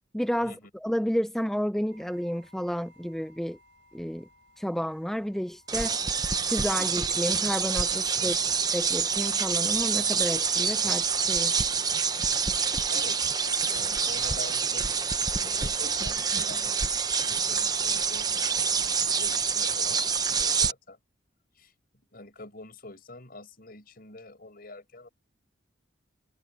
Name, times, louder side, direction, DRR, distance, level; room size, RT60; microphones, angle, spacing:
voice 1, 0.1-3.6 3.9-4.3 4.6-6.0 6.5-8.3 8.7-11.7, equal, ahead, 0.5 m, -31 dB
sound 1, 1.9-16.9, left 1 dB, 75° right, 3.8 m, -64 dB
sound 2, 5.7-20.7, right 5 dB, 20° right, 0.9 m, -27 dB
voice 2, 8.2-8.6 12.9-16.8 17.3-21.0 21.6-21.7 22.1-25.1, left 2 dB, 50° left, 5.6 m, -46 dB
head